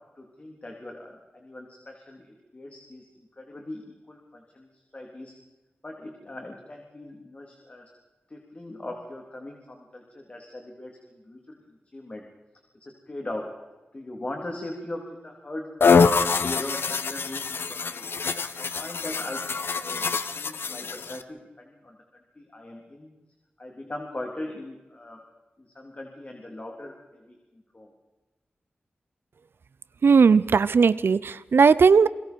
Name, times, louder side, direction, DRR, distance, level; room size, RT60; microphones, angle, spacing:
voice 1, 0.2-5.3 5.8-7.9 8.3-11.6 11.9-12.2 12.8-13.6 13.9-15.7 16.1-18.1 18.5-20.0 20.3-23.1 23.6-25.2 25.6-27.4 27.7-27.9, left 1 dB, 35° left, 1 dB, 3.4 m, -40 dB
sound 1, 15.8-21.2, left 5 dB, 80° left, 1.0 m, -24 dB
voice 2, 30.0-32.1, right 5 dB, 80° right, 17 dB, 0.6 m, -17 dB
29.5 x 22.5 x 4.6 m, 1.2 s
wide cardioid pair, 80°, 4 cm